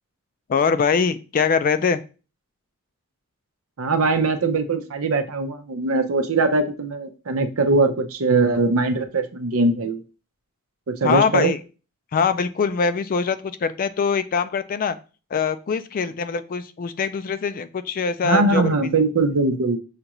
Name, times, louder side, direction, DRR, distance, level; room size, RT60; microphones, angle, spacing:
voice 1, 0.5-2.0 11.0-11.6 12.1-15.0 15.3-18.7, left 5 dB, 40° left, 12 dB, 0.3 m, -23 dB
voice 2, 3.8-10.0 10.9-11.5 18.2-19.8, right 3 dB, 80° right, 8 dB, 0.6 m, -21 dB
6.5 x 2.4 x 3.0 m, 0.34 s
head